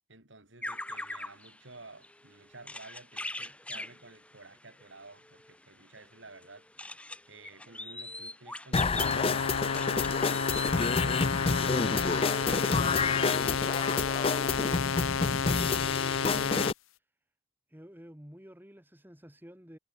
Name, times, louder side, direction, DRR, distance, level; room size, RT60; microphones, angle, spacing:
voice 1, 0.1-6.7 7.3-11.9, right 3 dB, 65° right, 4.0 m, -53 dB
sound 1, 0.6-12.3 12.8-12.9 13.1-13.6, left 1 dB, 5° left, 2.8 m, -43 dB
sound 2, 8.7-16.7, left 4 dB, 30° left, 0.5 m, -29 dB
sound 3, 9.0-16.7, left 6 dB, 90° left, 0.7 m, -31 dB
voice 2, 15.0-16.7 17.7-19.8, equal, 10° right, 2.1 m, -50 dB
head